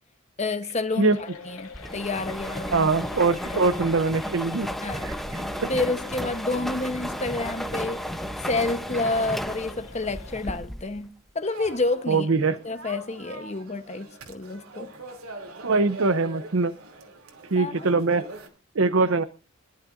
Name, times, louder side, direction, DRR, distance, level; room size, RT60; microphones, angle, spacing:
voice 1, 0.4-2.9 3.5-3.6 4.8-5.1 5.7-8.0 8.4-12.3 12.6-14.9 17.6-18.0, left 2 dB, 30° left, 1.0 m, -29 dB
sound 1, 0.9-10.6, left 4 dB, 85° left, 2.4 m, -46 dB
sound 2, 1.7-11.0, equal, ahead, 0.8 m, -33 dB
voice 2, 2.7-4.7 4.9-5.7 12.1-12.6 15.6-16.7 17.5-18.2 18.7-19.2, right 3 dB, 65° right, 0.7 m, -23 dB
sound 3, 11.4-18.5, right 2 dB, 90° right, 2.9 m, -43 dB
24.5 x 12.0 x 2.6 m
head